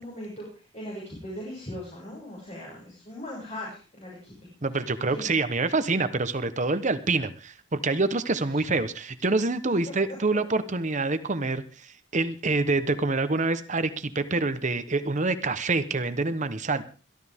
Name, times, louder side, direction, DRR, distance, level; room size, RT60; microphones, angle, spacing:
voice 1, 0.0-4.3 5.1-5.3 8.5-8.6, left 1 dB, 35° left, -4 dB, 6.7 m, -39 dB
voice 2, 4.6-16.8, right 3 dB, 35° right, 11 dB, 1.0 m, -26 dB
22.5 x 13.5 x 3.6 m, 0.37 s
head